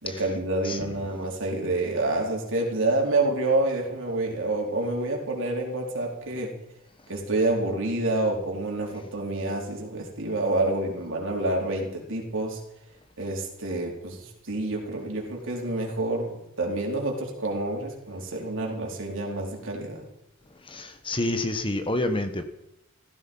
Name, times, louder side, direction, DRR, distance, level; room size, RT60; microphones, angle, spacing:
voice 1, 0.0-6.5 7.1-12.6 13.2-20.0, right 2 dB, 60° right, 0 dB, 4.2 m, -28 dB
voice 2, 20.7-22.4, left 1 dB, 25° left, 8 dB, 1.3 m, -28 dB
17.0 x 15.0 x 5.5 m, 0.84 s
head